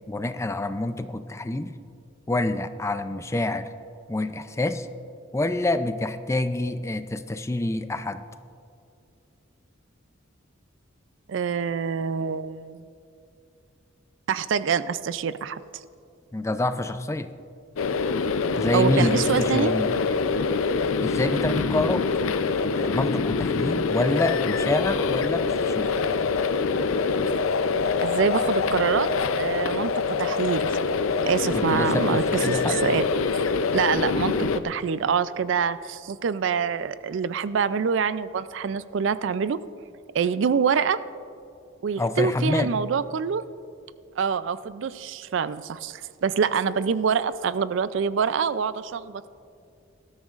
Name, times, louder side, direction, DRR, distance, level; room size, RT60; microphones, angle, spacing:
voice 1, 0.1-1.7 2.3-3.7 4.1-4.9 5.3-8.2 16.3-17.3 18.6-19.9 21.0-22.1 22.7-26.0 31.5-32.8 42.0-42.7, left 2 dB, 15° left, 10 dB, 0.4 m, -27 dB
voice 2, 11.3-12.8 14.3-15.6 18.7-19.7 28.0-29.9 30.2-30.7 31.3-33.1 33.7-34.4 34.6-39.6 40.1-41.0 41.8-43.4 44.2-49.3, right 6 dB, 65° right, 15 dB, 0.4 m, -25 dB
sound 1, 17.8-34.6, left 4 dB, 85° left, 0.5 m, -25 dB
20.0 x 13.0 x 2.5 m, 2.5 s
head